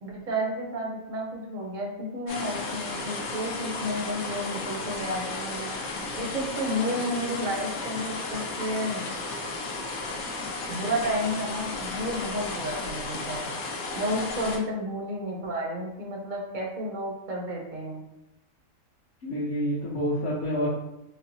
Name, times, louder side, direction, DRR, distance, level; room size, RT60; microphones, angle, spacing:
voice 1, 0.0-5.7 6.2-9.1 10.7-13.5 14.0-18.0, equal, 50° right, -2 dB, 0.6 m, -31 dB
sound 1, 2.3-14.6, left 3 dB, 90° left, 1.1 m, -34 dB
voice 2, 19.2-20.7, equal, 55° left, -10 dB, 1.0 m, -28 dB
4.3 x 2.0 x 2.7 m, 0.88 s
omnidirectional pair, 1.5 m